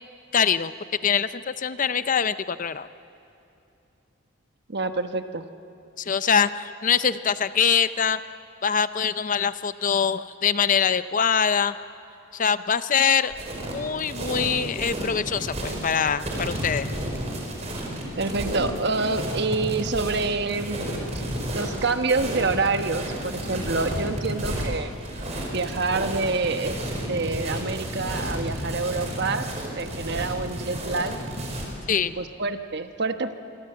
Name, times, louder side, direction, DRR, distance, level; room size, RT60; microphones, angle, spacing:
voice 1, 0.3-0.7 1.0-2.9 6.0-8.2 8.6-11.7 12.3-13.3 13.7-16.9 31.9-32.1, left 7 dB, 40° left, 13 dB, 0.6 m, -23 dB
voice 2, 4.7-5.4 18.2-20.8 21.5-24.9 25.5-26.8 27.1-29.5 29.8-31.2 32.2-33.3, right 3 dB, 55° right, 8 dB, 1.2 m, -27 dB
sound 1, 13.3-31.7, right 1 dB, 35° right, 4.8 m, -32 dB
sound 2, 14.2-14.3 14.8-14.9 15.3-15.4 16.5-16.6 16.9-17.6 18.1-18.2, equal, 10° right, 3.9 m, -45 dB
26.5 x 23.5 x 7.9 m, 2.8 s
head